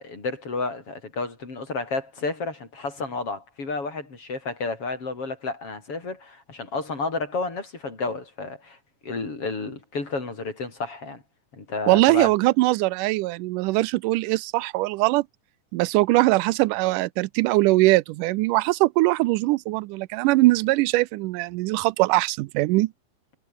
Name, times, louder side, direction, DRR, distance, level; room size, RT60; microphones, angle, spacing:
voice 1, 0.0-8.8 9.0-11.2 11.5-12.3, left 3 dB, 45° left, 6.2 m, -31 dB
voice 2, 11.9-15.3 15.7-22.9, right 20 dB, 90° right, 2.2 m, -21 dB
omnidirectional pair, 3.6 m